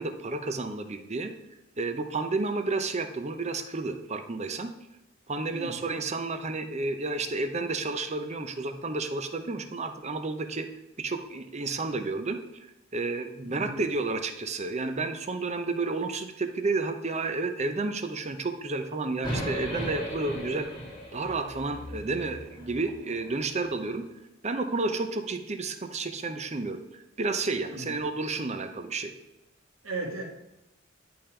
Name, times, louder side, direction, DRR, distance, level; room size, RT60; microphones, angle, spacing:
voice 1, 0.0-1.3 1.8-4.7 5.3-10.7 11.0-12.7 12.9-20.8 21.1-24.0 24.4-29.1, right 3 dB, 35° right, 7 dB, 0.7 m, -31 dB
voice 2, 13.4-13.8 27.7-27.9 29.8-30.2, right 3 dB, 80° right, -2 dB, 1.9 m, -36 dB
sound 1, 19.2-23.5, equal, 25° left, 1.5 m, -37 dB
10.5 x 3.8 x 4.4 m, 0.93 s
head